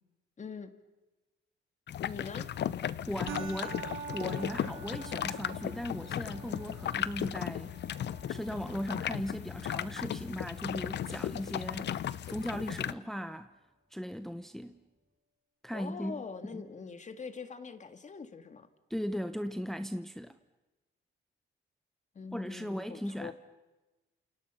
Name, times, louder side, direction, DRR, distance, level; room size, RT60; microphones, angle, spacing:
voice 1, 0.4-0.7 2.1-2.5 15.7-18.7 22.2-23.3, left 5 dB, 40° left, 2.1 m, -43 dB
sound 1, 1.9-12.9, left 10 dB, 60° left, 0.8 m, -36 dB
voice 2, 3.1-3.8 4.1-7.8 8.3-11.9 12.3-13.5 13.9-14.8 15.6-16.2 16.5-16.6 18.9-20.3 22.3-23.3, equal, ahead, 1.0 m, -38 dB
sound 2, 3.3-12.2, right 7 dB, 85° right, 3.5 m, -48 dB
29.5 x 28.5 x 5.8 m
cardioid pair, 90°, 20 cm